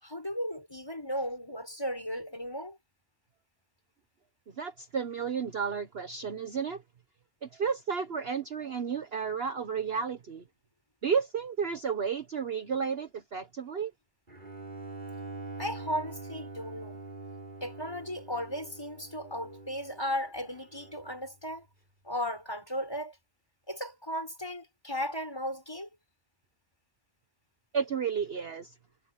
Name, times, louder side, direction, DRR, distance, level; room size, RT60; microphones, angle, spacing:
voice 1, 0.0-2.8 15.6-17.0 17.6-21.7 22.0-23.2 23.7-25.9, equal, 15° left, 6.0 m, -36 dB
voice 2, 4.6-6.8 7.4-10.4 11.0-13.9 27.7-28.7, right 6 dB, 50° right, 1.2 m, -32 dB
Bowed string instrument, 14.3-21.3, right 2 dB, 35° right, 5.2 m, -44 dB
omnidirectional pair, 1.4 m